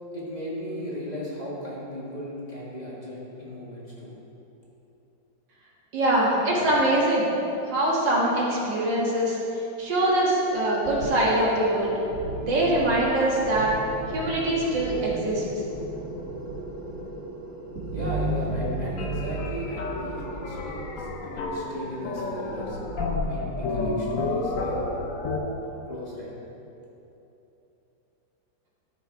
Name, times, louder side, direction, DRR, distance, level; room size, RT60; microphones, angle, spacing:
voice 1, 0.1-4.2 17.9-22.8 23.2-25.0 25.9-26.3, equal, 25° left, -7 dB, 1.6 m, -36 dB
voice 2, 5.9-7.3 7.7-9.4 9.8-12.0 12.4-13.7 14.1-15.4, right 1 dB, 70° right, -5 dB, 2.4 m, -23 dB
sound 1, 10.8-23.2, right 2 dB, 40° right, 1.9 m, -35 dB
sound 2, 19.0-25.4, left 3 dB, 55° left, 1.1 m, -31 dB
13.0 x 6.8 x 4.7 m, 3.0 s
omnidirectional pair, 2.1 m